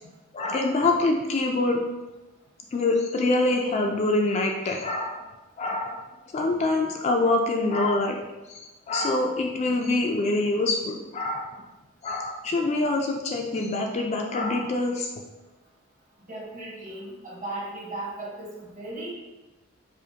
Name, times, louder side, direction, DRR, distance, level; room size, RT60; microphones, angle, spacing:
voice 1, 0.3-1.8 2.7-5.3 5.6-6.1 6.3-8.2 8.5-11.5 12.0-15.1, left 2 dB, 30° left, 2 dB, 0.3 m, -25 dB
voice 2, 16.2-19.1, right 2 dB, 40° right, -5 dB, 1.2 m, -36 dB
4.9 x 2.1 x 2.7 m, 1.1 s
head